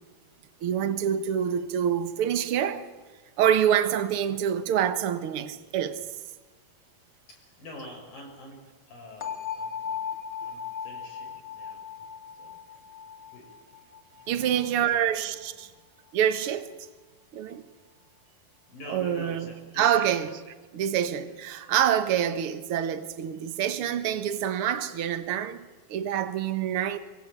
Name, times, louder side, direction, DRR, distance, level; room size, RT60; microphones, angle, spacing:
voice 1, 0.6-2.9 3.4-6.0 14.3-15.7 16.1-16.7 17.3-17.6 18.8-19.5 19.8-20.4 20.7-25.6 25.9-27.0, right 9 dB, 65° right, 1.3 m, -26 dB
voice 2, 7.3-10.0 10.4-11.8 12.4-12.5 13.3-13.5 14.2-15.5 18.7-20.2 21.2-21.3 22.0-22.1, left 1 dB, 60° left, 7.4 m, -46 dB
sound 1, 9.2-15.0, left 7 dB, 45° left, 1.1 m, -37 dB
24.5 x 24.0 x 8.6 m
omnidirectional pair, 4.5 m